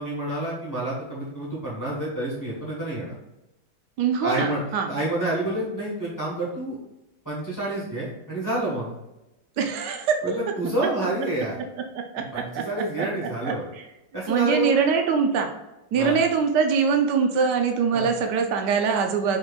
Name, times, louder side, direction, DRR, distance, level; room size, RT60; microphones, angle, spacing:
voice 1, 0.0-3.1 4.2-4.6 4.9-6.8 7.2-8.9 10.2-11.6 12.3-13.6 14.1-14.8 15.9-16.2 17.9-18.1, right 1 dB, 10° left, -7 dB, 1.4 m, -28 dB
voice 2, 4.0-4.9 9.6-10.2 12.1-12.6 13.0-13.1 13.4-13.8 14.3-15.5 15.9-19.4, right 6 dB, 85° right, 4 dB, 1.3 m, -23 dB
4.5 x 4.4 x 2.4 m, 0.96 s
omnidirectional pair, 1.8 m